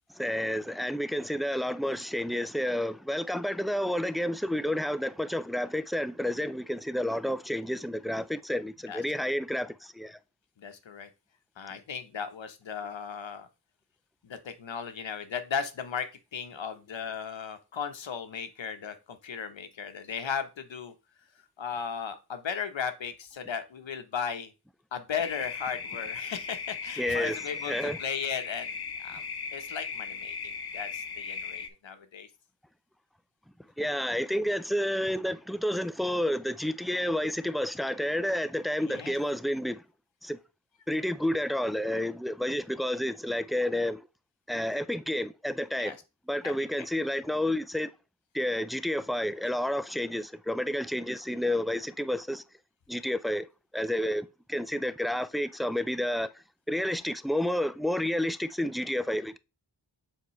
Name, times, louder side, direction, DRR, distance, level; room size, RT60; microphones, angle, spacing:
voice 1, 0.1-10.2 27.0-27.4 27.6-28.0 33.8-39.8 40.2-40.4 40.9-44.1 44.5-46.0 46.3-47.9 48.3-52.4 52.9-53.5 53.7-59.4, left 1 dB, ahead, 0.3 m, -30 dB
voice 2, 10.6-11.1 11.6-13.5 14.2-20.9 21.6-24.5 24.9-28.8 29.0-29.2 29.5-32.3 38.8-39.1 45.8-46.0 46.4-46.5, left 7 dB, 85° left, 1.0 m, -36 dB
sound 1, 25.2-31.7, left 5 dB, 60° left, 0.8 m, -38 dB
7.2 x 4.6 x 3.1 m
wide cardioid pair, 70°, 44 cm